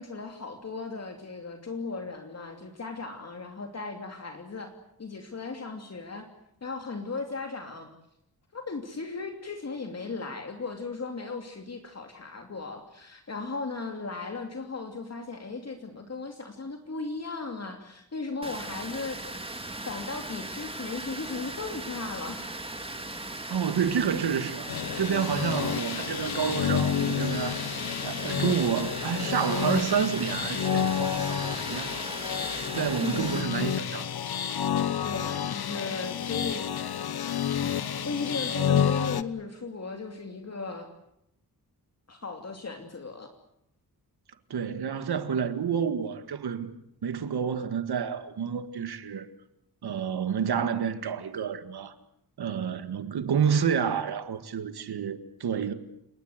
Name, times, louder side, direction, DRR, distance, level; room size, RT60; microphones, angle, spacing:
voice 1, 0.0-4.7 5.0-6.2 6.6-7.9 8.5-19.2 19.8-22.5 33.0-33.5 35.0-36.7 37.5-40.9 42.1-43.3, left 4 dB, 40° left, 2.9 m, -36 dB
Water, 18.4-33.4, right 2 dB, 15° right, 3.0 m, -38 dB
voice 2, 23.5-24.7 25.0-27.6 28.0-32.0 32.7-34.1 44.5-46.7 47.0-49.3 49.8-52.0 52.4-55.7, right 7 dB, 90° right, 1.9 m, -29 dB
sound 1, 24.7-39.2, left 8 dB, 80° left, 1.2 m, -30 dB
30.0 x 19.5 x 8.1 m
wide cardioid pair, 105°, 37 cm